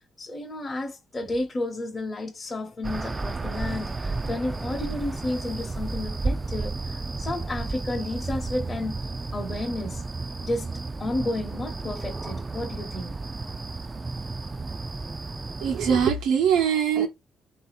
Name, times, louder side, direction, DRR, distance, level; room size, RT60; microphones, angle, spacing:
voice 1, 0.2-9.0 9.3-10.0 10.4-13.1, left 1 dB, 30° left, 1.0 m, -32 dB
sound 1, 2.8-16.1, right 3 dB, 25° right, 0.5 m, -32 dB
voice 2, 15.6-17.1, right 7 dB, 90° right, 1.0 m, -22 dB
3.7 x 2.8 x 4.1 m
cardioid pair, 95°, 0 cm